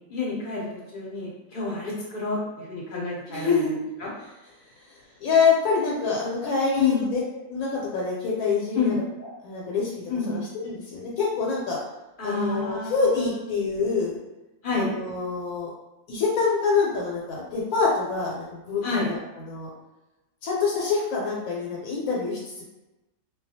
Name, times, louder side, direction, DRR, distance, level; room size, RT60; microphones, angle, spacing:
voice 1, 0.1-0.7 0.9-3.6 4.0-4.1 6.8-7.0 8.8-8.9 10.1-10.4 12.2-13.0 14.6-14.9 18.8-19.1, left 4 dB, 50° left, -5 dB, 0.7 m, -28 dB
voice 2, 3.3-3.7 4.8-7.2 7.5-9.0 9.4-11.8 12.2-14.2 14.7-15.7 16.1-19.7 20.4-22.6, left 4 dB, 80° left, -3 dB, 1.0 m, -26 dB
2.3 x 2.2 x 2.7 m, 1.0 s
omnidirectional pair, 1.5 m